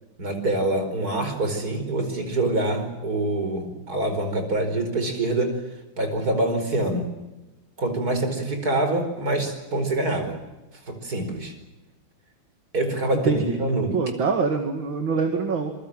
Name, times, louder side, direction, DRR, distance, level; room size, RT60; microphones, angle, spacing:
voice 1, 0.2-5.6 6.0-7.1 7.8-10.4 10.9-11.5 12.7-14.0, right 2 dB, 45° right, 7 dB, 5.3 m, -25 dB
voice 2, 13.2-13.6 13.9-15.7, right 5 dB, 65° right, 5 dB, 2.9 m, -24 dB
26.5 x 23.5 x 7.5 m, 1.0 s
omnidirectional pair, 2.3 m